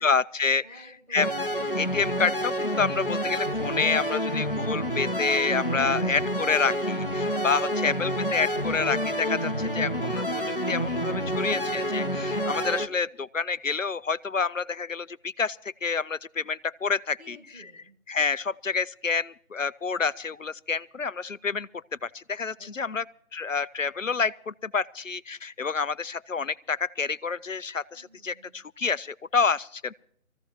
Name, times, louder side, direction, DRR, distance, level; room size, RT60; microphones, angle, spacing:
voice 1, 0.0-0.6 1.1-1.3 1.8-17.4 18.1-23.0 23.3-29.9, left 5 dB, 60° left, 0.6 m, -28 dB
voice 2, 0.6-1.3 17.2-18.0 22.6-23.0 27.9-28.6, right 1 dB, 55° right, 7.0 m, -53 dB
sound 1, 1.2-12.9, equal, 40° left, 0.9 m, -28 dB
23.0 x 15.0 x 2.9 m
figure-of-eight pair, 170°, 43 cm